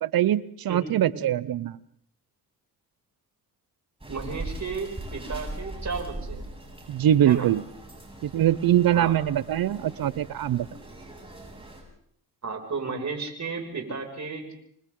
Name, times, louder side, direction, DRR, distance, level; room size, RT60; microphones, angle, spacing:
voice 1, 0.0-1.8 6.9-7.6 8.2-10.7, right 11 dB, 70° right, 18 dB, 0.8 m, -23 dB
voice 2, 0.7-1.0 4.1-6.4 7.3-7.5 8.9-9.1 12.4-14.5, right 4 dB, 50° right, 3 dB, 6.1 m, -33 dB
sound 1, 4.0-11.8, right 1 dB, 15° right, 7.1 m, -40 dB
28.0 x 25.0 x 3.8 m, 0.65 s
cardioid pair, 75°, 37 cm